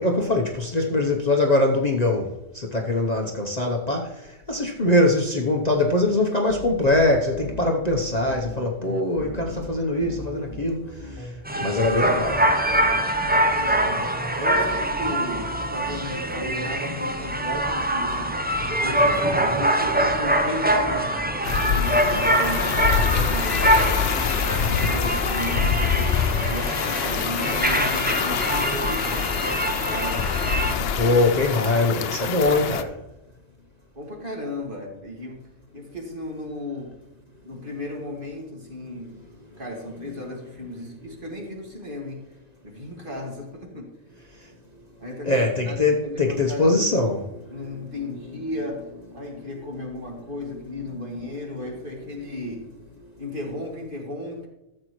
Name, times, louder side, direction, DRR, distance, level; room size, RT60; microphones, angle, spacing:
voice 1, 0.0-11.3 11.6-12.4 30.9-32.9 45.2-47.5, left 2 dB, 35° left, 0.9 m, -22 dB
sound 1, 6.5-25.0, left 1 dB, 10° left, 1.4 m, -38 dB
sound 2, 11.5-30.8, right 1 dB, 10° right, 0.5 m, -24 dB
voice 2, 13.3-14.1 14.4-18.3 18.8-24.2 24.7-26.2 26.5-29.4 29.9-30.3 33.9-35.5 35.7-37.0 37.4-39.2 39.6-42.2 42.6-43.9 45.0-47.1 47.5-52.7 53.2-54.5, left 1 dB, 40° right, 2.3 m, -35 dB
sound 3, 21.4-32.8, left 7 dB, 60° left, 0.8 m, -25 dB
13.5 x 7.6 x 3.1 m
omnidirectional pair, 1.3 m